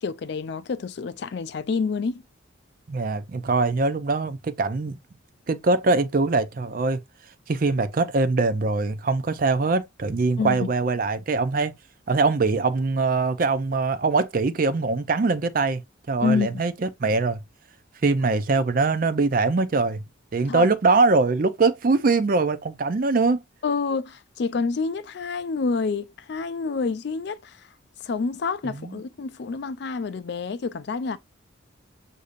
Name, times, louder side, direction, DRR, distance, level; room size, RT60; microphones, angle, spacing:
voice 1, 0.0-2.2 10.4-10.7 16.2-16.6 20.5-20.7 23.6-27.7 28.0-31.2, left 4 dB, 55° left, 0.4 m, -28 dB
voice 2, 2.9-5.0 5.5-7.0 7.5-11.7 12.1-15.8 16.1-17.4 18.0-20.0 20.3-23.4 28.7-29.0, right 3 dB, 45° right, 0.5 m, -22 dB
6.5 x 2.7 x 2.5 m
head